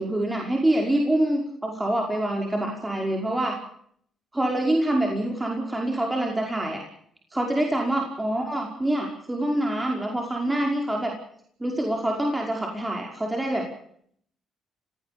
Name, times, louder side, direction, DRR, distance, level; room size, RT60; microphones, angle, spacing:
voice 1, 0.0-3.5 4.3-6.8 7.3-11.1 11.6-13.6, right 1 dB, 15° right, 1 dB, 5.4 m, -25 dB
29.0 x 17.5 x 7.1 m, 0.65 s
cardioid pair, 90°, 0 cm